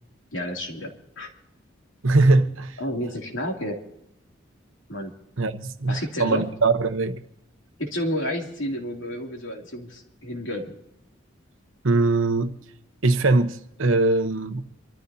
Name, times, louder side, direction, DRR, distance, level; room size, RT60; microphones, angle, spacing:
voice 1, 0.3-1.3 2.8-3.8 4.9-5.1 5.9-6.4 7.8-10.7, left 1 dB, 75° left, 2.8 m, -31 dB
voice 2, 2.0-2.8 5.4-7.2 11.8-12.5 13.0-14.6, right 3 dB, 85° right, 1.0 m, -21 dB
26.5 x 13.5 x 2.8 m
head